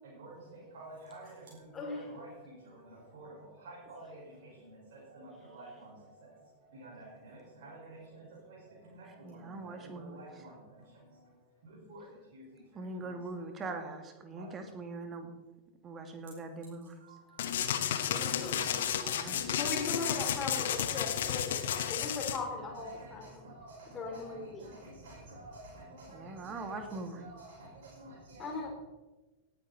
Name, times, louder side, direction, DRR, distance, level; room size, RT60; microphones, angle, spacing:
voice 1, 0.0-13.1 13.6-13.7 14.4-14.7 17.0-18.8 20.2-28.7, right 2 dB, 55° right, -5 dB, 5.4 m, -51 dB
voice 2, 1.7-2.1 18.1-18.6 19.1-21.6 21.9-23.4 23.9-24.7 28.4-28.7, left 3 dB, 20° left, 1 dB, 4.2 m, -39 dB
voice 3, 9.0-10.4 12.7-15.3 15.8-17.0 19.0-19.5 26.1-27.2, right 3 dB, 25° right, 6 dB, 2.4 m, -42 dB
sound 1, 17.4-22.4, left 9 dB, 60° left, 1.1 m, -32 dB
18.0 x 10.0 x 4.3 m, 1.1 s
figure-of-eight pair, 90°, 0 cm